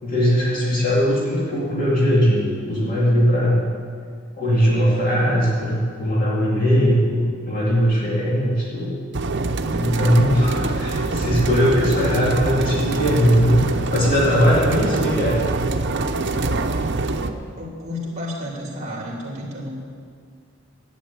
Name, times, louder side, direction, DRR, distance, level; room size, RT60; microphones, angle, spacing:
voice 1, 0.0-3.6 4.4-9.0 9.7-13.6 13.9-15.4, equal, 45° left, -6 dB, 2.5 m, -19 dB
sound 1, 9.1-17.3, right 3 dB, 60° right, 0.7 m, -24 dB
voice 2, 17.6-19.7, left 1 dB, 35° right, -2 dB, 2.8 m, -31 dB
11.0 x 9.3 x 8.3 m, 2.1 s
head